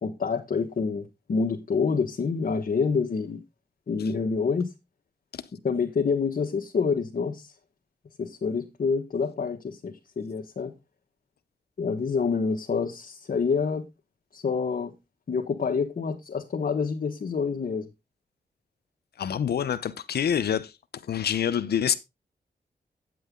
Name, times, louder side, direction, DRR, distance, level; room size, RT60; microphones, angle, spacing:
voice 1, 0.0-3.4 3.9-4.7 5.6-7.5 8.2-10.7 11.8-13.8 14.3-14.9 15.3-17.9, left 5 dB, 60° left, 1.4 m, -27 dB
voice 2, 19.2-20.7 21.1-21.9, left 8 dB, 85° left, 0.8 m, -26 dB
9.3 x 7.7 x 3.7 m
cardioid pair, 65°, 16 cm